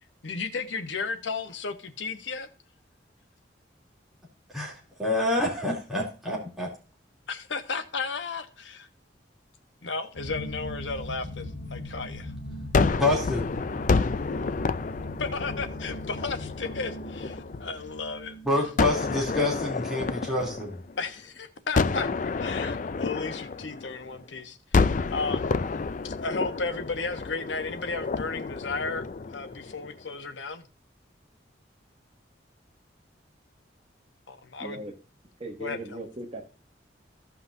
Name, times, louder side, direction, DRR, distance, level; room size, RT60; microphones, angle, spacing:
voice 1, 0.2-2.5 7.3-8.9 9.8-12.3 15.2-18.4 21.0-22.1 22.4-24.8 25.1-25.6 26.0-29.0 29.3-30.7 34.3-34.8 35.6-36.0, left 4 dB, 90° left, 9 dB, 1.1 m, -34 dB
voice 2, 5.0-6.7 12.9-13.6 18.4-20.7, left 2 dB, ahead, -5 dB, 3.0 m, -27 dB
sound 1, 10.1-19.6, left 1 dB, 65° left, 1.6 m, -39 dB
Gunshot gunfire, 12.7-17.9 18.8-21.2 21.7-24.2 24.7-29.9, left 4 dB, 45° left, 0.4 m, -29 dB
voice 3, 34.6-34.9 35.4-36.4, right 1 dB, 35° right, 3 dB, 1.3 m, -38 dB
15.5 x 5.7 x 2.7 m, 0.34 s
head